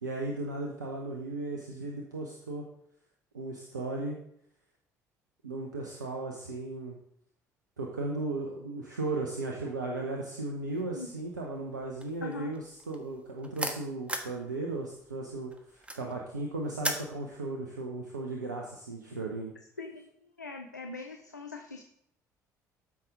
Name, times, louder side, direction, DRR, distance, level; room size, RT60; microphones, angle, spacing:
voice 1, 0.0-2.6 3.3-4.2 5.4-7.0 7.8-19.5, right 2 dB, 85° right, 1 dB, 0.9 m, -36 dB
sound 1, 10.8-11.2 11.5-14.4 14.7-17.1, right 1 dB, 15° right, 1.4 m, -36 dB
voice 2, 12.2-12.5 19.8-20.1 20.4-21.8, left 3 dB, 90° left, 3 dB, 0.6 m, -41 dB
13.5 x 6.0 x 3.7 m, 0.71 s
figure-of-eight pair, 50°, 9 cm